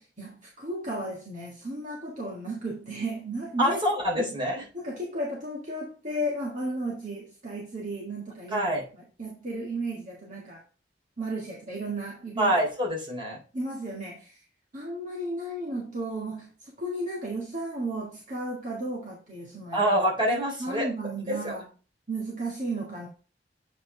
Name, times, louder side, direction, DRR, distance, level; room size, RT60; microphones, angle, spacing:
voice 1, 0.0-3.8 4.7-8.7 9.2-10.6 11.2-12.5 13.5-14.4 14.7-19.8 20.6-21.7 22.1-23.1, right 1 dB, 45° right, 1.8 m, -34 dB
voice 2, 3.6-4.6 8.5-8.8 12.4-13.4 19.7-20.9 21.3-21.6, equal, 30° right, 3.5 m, -26 dB
8.1 x 5.2 x 3.3 m
head